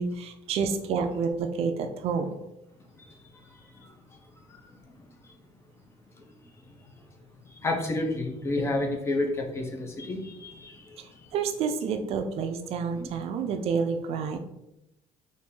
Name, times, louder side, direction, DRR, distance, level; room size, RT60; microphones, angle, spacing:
voice 1, 0.0-2.3 11.3-14.4, right 5 dB, 55° right, 0.4 m, -29 dB
voice 2, 3.4-4.0 4.5-4.6 5.2-5.3 7.5-11.2 13.0-13.1 13.4-13.5, left 2 dB, 20° left, 0.5 m, -31 dB
4.2 x 2.5 x 3.7 m
cardioid pair, 170°, 12 cm